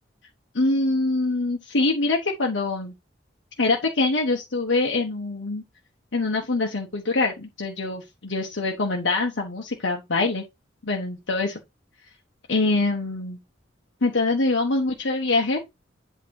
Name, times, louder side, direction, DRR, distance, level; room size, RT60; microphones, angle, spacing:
voice 1, 0.5-2.9 3.6-5.6 6.1-10.4 10.8-11.6 12.5-13.4 14.0-15.6, left 3 dB, 85° left, 1.2 m, -24 dB
8.5 x 3.2 x 4.8 m
head